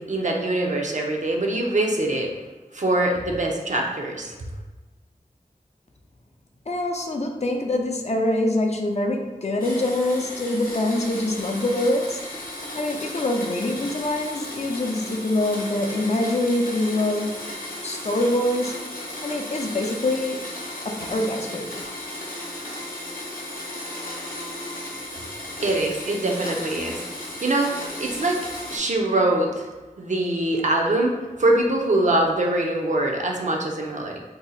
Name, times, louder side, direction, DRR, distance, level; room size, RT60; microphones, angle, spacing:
voice 1, 0.0-2.3 2.7-4.3 25.6-28.4 28.7-29.7 30.0-31.1 31.4-34.2, right 2 dB, 55° right, 0 dB, 0.5 m, -23 dB
voice 2, 6.7-12.2 12.8-17.4 17.8-18.8 19.2-20.4 20.8-21.8, left 1 dB, 50° left, 2 dB, 0.4 m, -24 dB
Domestic sounds home sounds, 9.6-28.8, left 1 dB, 80° left, 0.7 m, -35 dB
2.7 x 2.1 x 3.9 m, 1.2 s
wide cardioid pair, 45°, 15 cm